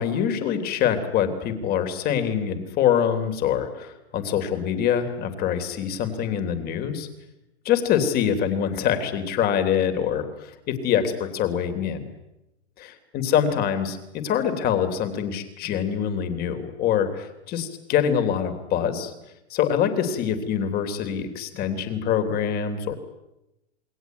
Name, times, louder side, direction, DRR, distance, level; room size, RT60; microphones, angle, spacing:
voice 1, 0.0-7.1 7.7-12.1 12.8-13.0 13.3-19.1 19.5-23.0, left 8 dB, 25° left, 8 dB, 3.5 m, -24 dB
28.0 x 21.5 x 9.4 m, 0.93 s
hypercardioid pair, 145°, 34 cm